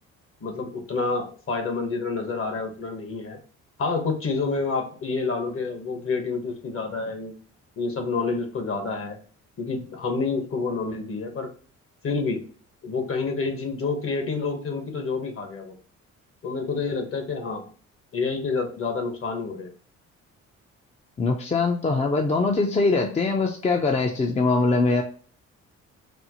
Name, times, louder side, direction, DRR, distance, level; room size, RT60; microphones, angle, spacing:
voice 1, 0.4-3.4 3.8-7.4 7.8-9.2 9.6-11.5 12.0-12.4 12.8-15.7 16.4-17.6 18.1-19.7, left 4 dB, 45° left, 6 dB, 1.1 m, -28 dB
voice 2, 21.2-25.0, left 3 dB, 20° left, 2 dB, 0.5 m, -22 dB
4.2 x 2.0 x 2.8 m, 0.42 s
cardioid pair, 90°, 30 cm